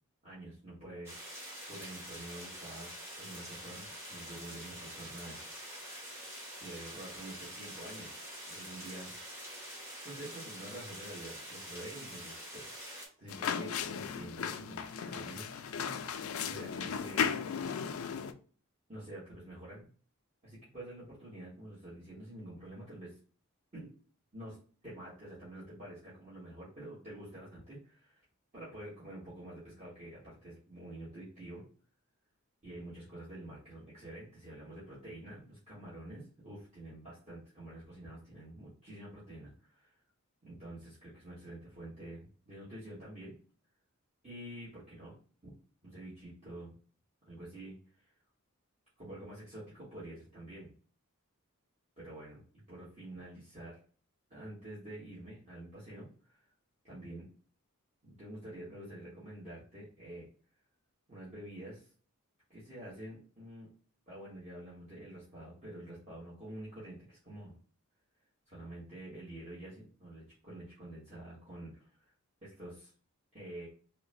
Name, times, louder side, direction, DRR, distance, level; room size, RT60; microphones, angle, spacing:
voice 1, 0.2-1.1 1.4-5.4 6.6-9.1 10.0-15.9 16.4-17.3 18.9-19.9 20.4-23.2 23.7-23.9 24.3-24.6 24.8-28.2 28.5-31.6 32.6-39.9 40.4-43.3 44.2-45.1 45.4-45.5 45.8-46.7 47.3-48.1 49.0-50.7 52.0-52.4 52.7-53.7 54.3-56.4 56.8-57.3 58.0-60.2 61.1-61.9 62.5-63.7 64.1-67.5 68.5-72.1 72.4-72.9 73.3-73.7, right 1 dB, 30° right, -9 dB, 1.3 m, -48 dB
sound 1, 1.0-13.1, equal, 10° right, 1.0 m, -46 dB
sound 2, 13.3-18.3, left 7 dB, 70° left, 0.3 m, -36 dB
3.8 x 2.1 x 2.6 m, 0.42 s
head